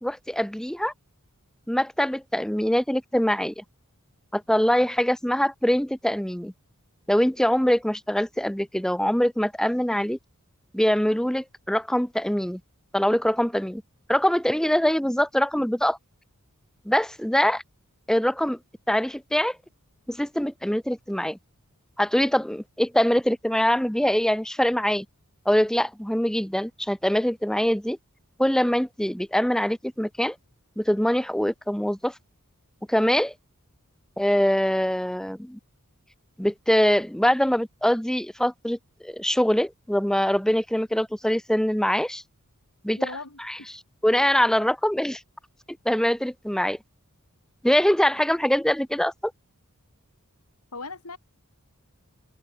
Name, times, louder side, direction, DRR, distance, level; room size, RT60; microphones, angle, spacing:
voice 1, 0.0-0.9 1.7-3.6 4.3-6.5 7.1-10.2 10.7-12.6 12.9-13.8 14.1-16.0 16.9-17.6 18.1-18.6 18.9-19.6 20.1-21.4 22.0-25.1 25.5-28.0 28.4-30.3 30.8-32.1 32.9-33.3 34.2-35.6 36.4-38.8 39.0-42.2 42.8-43.0 44.0-45.2 45.9-46.8 47.6-49.3, equal, 5° left, 0.7 m, -23 dB
voice 2, 43.0-43.7 50.7-51.2, left 3 dB, 85° left, 5.6 m, -38 dB
head